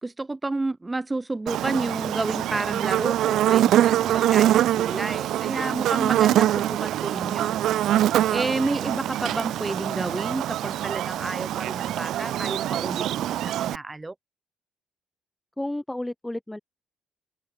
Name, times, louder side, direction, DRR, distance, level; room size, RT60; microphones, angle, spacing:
voice 1, 0.0-7.6 8.3-14.1, right 2 dB, 20° right, 1.7 m, -30 dB
Buzz, 1.5-13.8, right 12 dB, 80° right, 0.8 m, -24 dB
voice 2, 15.6-16.6, left 1 dB, 10° left, 1.1 m, -32 dB
open air
cardioid pair, 90°, 0 cm